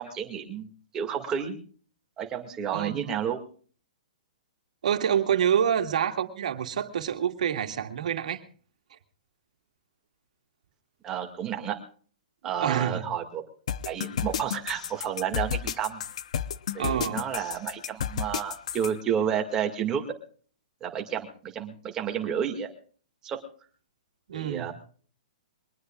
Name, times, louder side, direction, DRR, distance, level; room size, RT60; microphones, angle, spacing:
voice 1, 0.0-1.6 2.2-3.4 11.0-11.8 12.4-13.4 13.8-16.0 16.7-20.1 20.8-22.7 23.2-23.4 24.3-24.7, right 8 dB, 15° right, 3 dB, 2.1 m, -31 dB
voice 2, 2.7-3.1 4.8-8.4 12.6-13.0 16.8-17.3 24.3-24.7, right 9 dB, 60° right, 5 dB, 2.2 m, -27 dB
sound 1, 13.7-18.9, left 9 dB, 50° left, 0.8 m, -31 dB
23.0 x 19.5 x 2.4 m, 0.43 s
hypercardioid pair, 175°, 4 cm